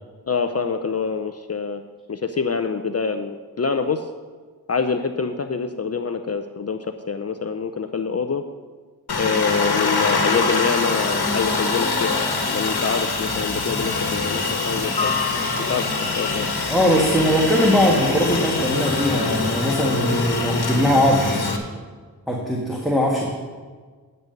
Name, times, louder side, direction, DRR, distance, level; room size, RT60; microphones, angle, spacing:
voice 1, 0.3-1.8 2.1-4.1 4.7-8.4 9.1-12.1 12.5-15.1 15.6-15.9 16.2-16.5, left 5 dB, 40° left, 8 dB, 0.6 m, -25 dB
Aircraft, 9.1-21.6, left 3 dB, 75° left, 1.4 m, -24 dB
voice 2, 16.7-21.4 22.3-23.3, equal, ahead, -2 dB, 1.6 m, -20 dB
9.6 x 5.4 x 7.8 m, 1.5 s
cardioid pair, 50°, 38 cm